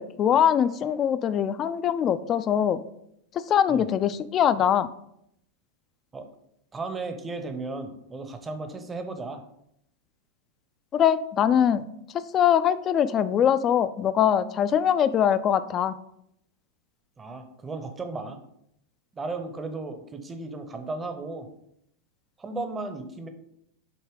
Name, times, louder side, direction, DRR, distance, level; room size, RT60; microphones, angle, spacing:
voice 1, 0.0-2.8 3.5-4.9 10.9-11.9 12.3-15.9, left 9 dB, 30° left, 13 dB, 0.3 m, -22 dB
voice 2, 6.7-9.4 17.2-18.4 19.1-21.5 22.4-23.3, right 3 dB, 15° right, 7 dB, 0.7 m, -35 dB
6.9 x 2.8 x 4.8 m, 0.75 s
figure-of-eight pair, 90°, 0 cm